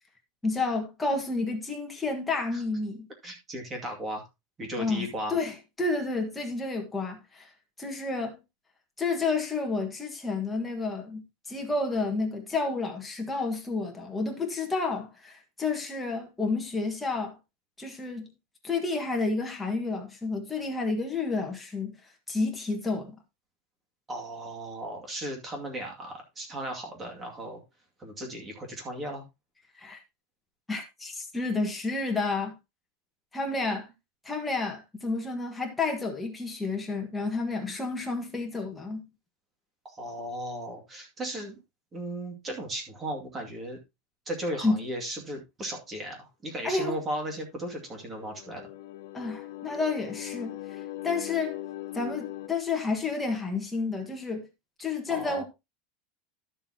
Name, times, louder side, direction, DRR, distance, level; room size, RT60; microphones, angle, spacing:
voice 1, 0.4-3.1 4.8-7.5 7.8-8.4 9.0-17.4 17.8-18.3 18.6-22.0 22.3-23.1 29.8-30.0 30.7-32.6 33.3-33.9 34.2-39.0 44.6-44.8 46.6-46.9 49.1-51.6 51.9-54.5 54.8-55.4, left 3 dB, 5° left, 1.7 m, -30 dB
voice 2, 3.2-4.2 4.6-5.3 24.1-27.6 28.0-29.2 33.6-33.8 39.8-41.6 41.9-43.8 44.3-48.7 55.1-55.4, right 1 dB, 15° right, 2.3 m, -36 dB
sound 1, 47.5-52.5, left 15 dB, 70° left, 1.2 m, -40 dB
12.0 x 7.2 x 2.9 m
supercardioid pair, 170°, 0 cm